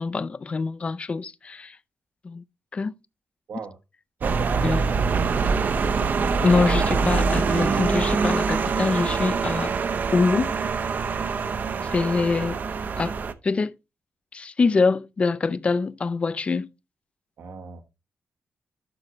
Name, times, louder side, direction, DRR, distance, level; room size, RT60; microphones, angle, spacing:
voice 1, 0.0-1.8 2.2-2.4 2.7-2.9 4.6-4.8 6.4-9.7 10.1-10.5 11.9-12.6 13.0-13.1 13.4-13.7 14.3-16.7, left 4 dB, 30° left, 0.4 m, -24 dB
sound 1, 4.2-13.3, right 5 dB, 45° right, 0.6 m, -24 dB
voice 2, 4.2-5.3 11.4-11.9 17.4-17.8, right 5 dB, 75° right, 1.4 m, -36 dB
11.5 x 6.3 x 3.1 m
wide cardioid pair, 165°, 4 cm